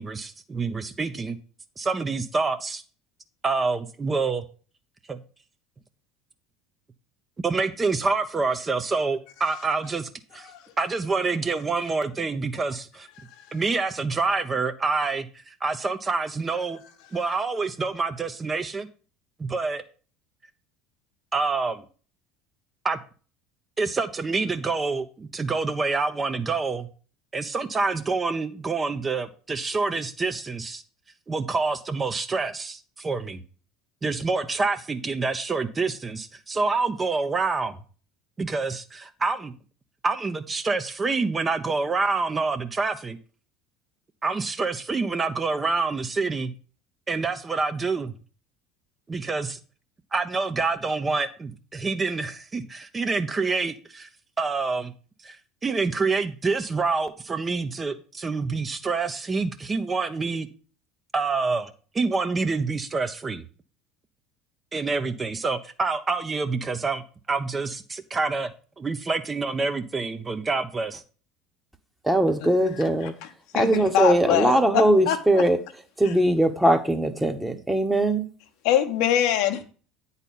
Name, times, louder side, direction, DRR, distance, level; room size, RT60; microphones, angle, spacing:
voice 1, 0.0-1.4 1.8-2.8 3.4-4.4 5.1-5.2 7.4-10.5 10.8-13.1 13.5-16.8 17.1-18.9 19.4-19.8 21.3-21.9 22.8-23.0 23.8-26.9 27.3-30.8 31.3-33.4 34.0-37.8 38.4-39.5 40.0-43.2 44.2-46.5 47.1-48.1 49.1-49.6 50.1-54.1 54.4-54.9 55.2-60.5 61.1-63.4 64.7-67.0 67.3-68.5 68.8-71.0, right 4 dB, 25° right, 0.7 m, -27 dB
voice 2, 72.0-73.1 73.5-75.6 76.0-78.3, right 1 dB, 5° right, 1.1 m, -21 dB
voice 3, 72.8-73.1 73.5-75.4 76.0-76.1 78.6-79.6, left 10 dB, 65° left, 0.9 m, -24 dB
9.0 x 4.1 x 5.4 m
hypercardioid pair, 70°, 0 cm